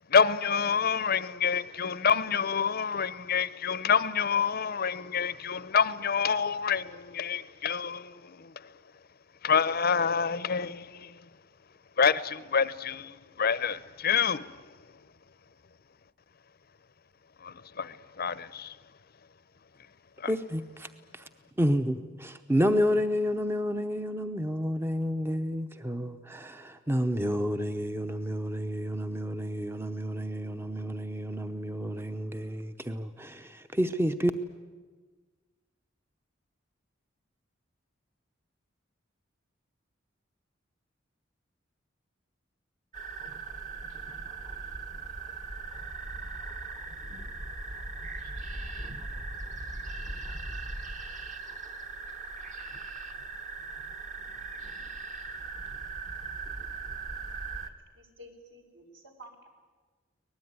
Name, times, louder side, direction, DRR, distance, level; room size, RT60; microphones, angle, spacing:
voice 1, 0.1-8.8 9.4-11.3 12.0-15.0 17.4-18.8 20.2-20.3, left 6 dB, 50° left, 0.7 m, -28 dB
voice 2, 20.3-21.2 21.6-34.3, equal, 10° right, 0.8 m, -30 dB
sound 1, 42.9-57.7, right 3 dB, 40° right, 1.5 m, -39 dB
voice 3, 57.6-59.5, equal, 70° right, 4.6 m, -52 dB
24.5 x 19.5 x 9.5 m
head